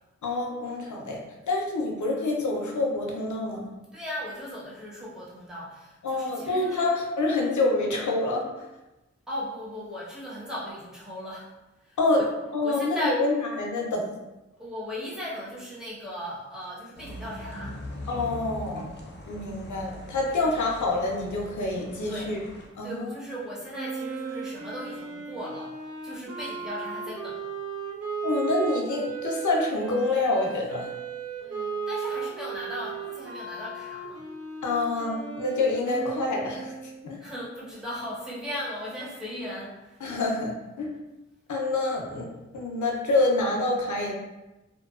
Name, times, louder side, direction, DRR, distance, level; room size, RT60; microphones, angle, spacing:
voice 1, 0.2-1.2 1.5-3.6 6.0-8.7 12.0-12.3 12.5-14.1 18.1-18.9 19.3-22.4 22.8-23.1 28.2-30.9 34.6-36.7 37.0-37.2 40.0-40.9 41.5-42.3 42.5-44.1, left 2 dB, 85° left, 0 dB, 0.5 m, -27 dB
voice 2, 3.9-6.9 9.3-11.5 11.8-12.0 12.6-13.2 14.6-17.8 22.1-22.3 22.8-25.7 26.0-27.4 31.4-34.2 37.2-40.0, equal, ahead, -7 dB, 1.0 m, -37 dB
sound 1, 16.9-22.7, left 1 dB, 40° left, 0.5 m, -41 dB
Wind instrument woodwind instrument, 23.7-37.1, right 5 dB, 55° right, 0.6 m, -35 dB
2.6 x 2.2 x 2.3 m, 1.0 s
cardioid pair, 50°, 29 cm